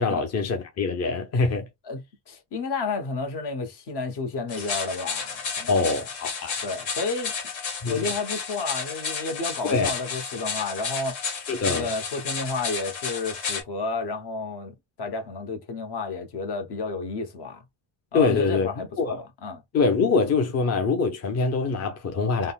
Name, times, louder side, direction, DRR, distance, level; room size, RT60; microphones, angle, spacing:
voice 1, 0.0-1.7 5.7-6.5 7.8-8.0 9.6-9.9 11.5-11.9 18.1-18.7 19.0-19.2 19.7-22.5, left 4 dB, 35° left, 0.6 m, -24 dB
voice 2, 1.8-5.8 6.6-7.3 7.8-17.6 18.1-19.6, left 3 dB, 55° left, 1.2 m, -31 dB
sound 1, 4.5-13.6, left 5 dB, 75° left, 1.7 m, -32 dB
3.6 x 2.1 x 2.4 m
cardioid pair, 90°, 48 cm